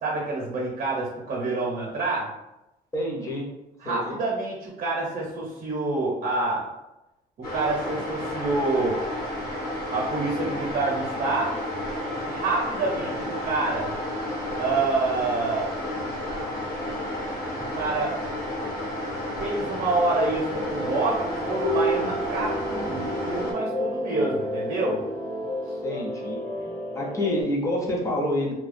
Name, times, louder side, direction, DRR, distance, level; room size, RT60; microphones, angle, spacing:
voice 1, 0.0-2.3 3.8-6.7 7.4-9.0 9.9-11.6 12.3-13.9 14.6-15.7 17.6-18.1 19.4-25.0 25.7-25.8, right 3 dB, 55° right, -3 dB, 0.7 m, -27 dB
voice 2, 2.9-3.5 3.8-4.2 12.9-13.2 25.8-26.4 26.9-28.5, left 1 dB, 20° left, -1 dB, 0.6 m, -28 dB
sound 1, 7.4-23.5, left 1 dB, 55° left, 1.0 m, -32 dB
sound 2, 20.5-27.4, equal, 85° left, 1.0 m, -30 dB
2.2 x 2.2 x 2.5 m, 0.94 s
cardioid pair, 110°, 17 cm